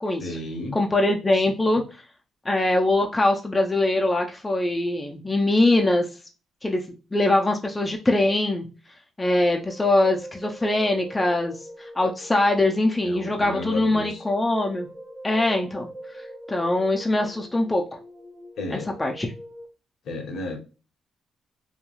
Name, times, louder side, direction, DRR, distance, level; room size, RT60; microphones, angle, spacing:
voice 1, 0.2-0.8 1.4-1.8 13.0-14.2 18.6-18.9 20.0-20.6, left 2 dB, 65° left, 5 dB, 0.7 m, -33 dB
voice 2, 0.7-1.8 2.5-6.1 6.6-6.8 7.1-8.7 9.2-14.9 15.2-15.9 16.5-17.8 18.7-19.3, left 2 dB, 15° left, 2 dB, 0.4 m, -22 dB
sound 1, 9.4-19.7, equal, 35° right, 0.6 m, -43 dB
3.0 x 2.3 x 2.3 m, 0.33 s
cardioid pair, 90°, 0 cm